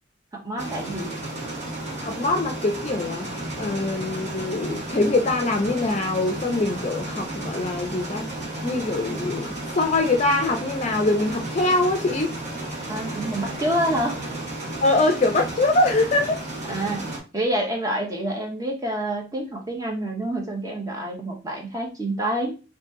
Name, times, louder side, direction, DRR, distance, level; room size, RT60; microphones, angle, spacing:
voice 1, 0.3-1.1 12.9-14.2 16.7-17.1 17.3-22.6, right 1 dB, 20° right, 0.8 m, -27 dB
sound 1, 0.6-17.2, right 1 dB, 35° right, 1.3 m, -33 dB
voice 2, 2.0-8.2 8.6-12.3 14.8-16.4, left 2 dB, 35° left, 0.4 m, -23 dB
sound 2, 3.2-15.0, equal, 55° right, 1.3 m, -44 dB
2.8 x 2.6 x 3.6 m
head